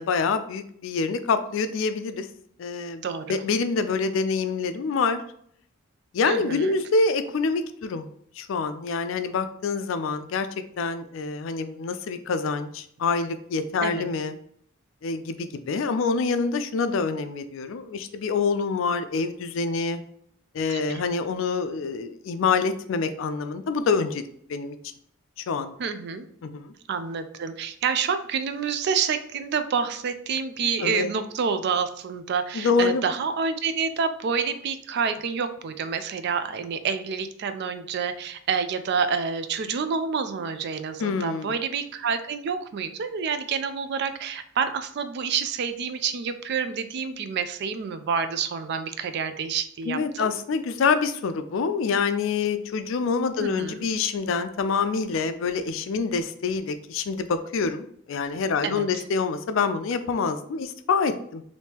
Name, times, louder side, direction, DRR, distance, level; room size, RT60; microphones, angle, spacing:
voice 1, 0.0-2.3 2.6-3.0 3.3-5.2 6.1-8.1 8.4-10.5 10.8-14.3 15.0-20.0 20.5-24.2 24.5-24.8 25.4-25.7 26.4-26.7 30.8-31.1 32.5-33.0 41.0-41.5 49.9-61.4, left 4 dB, 65° left, 10 dB, 0.3 m, -26 dB
voice 2, 3.0-3.4 6.2-6.8 13.8-14.0 20.7-21.0 25.8-26.3 26.9-50.3 53.4-53.7 58.6-59.0, right 6 dB, 55° right, 10 dB, 0.3 m, -28 dB
3.5 x 2.7 x 2.8 m, 0.65 s
head